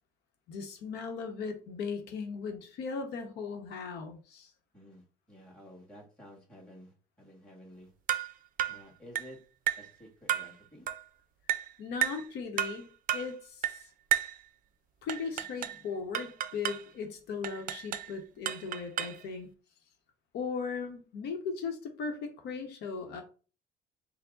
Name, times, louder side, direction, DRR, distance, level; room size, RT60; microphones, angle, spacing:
voice 1, 0.5-4.5 11.8-12.9 13.1-13.9 15.0-19.5 20.3-23.2, left 5 dB, 75° left, 5 dB, 0.8 m, -38 dB
voice 2, 4.7-7.9 8.7-9.4 9.8-10.9, equal, 5° left, -2 dB, 1.9 m, -52 dB
sound 1, 8.1-8.3 8.6-8.8 9.2-9.3 9.7-9.9 10.3-10.5 10.9-11.0 11.5-11.7 12.0-12.3 12.6-12.8 13.1-13.3 13.6-13.8 14.1-14.4 15.1-15.8 16.1-16.8 17.4-18.1 18.5-19.2, right 12 dB, 55° right, 0.4 m, -32 dB
4.5 x 2.0 x 3.8 m, 0.37 s
cardioid pair, 110°, 17 cm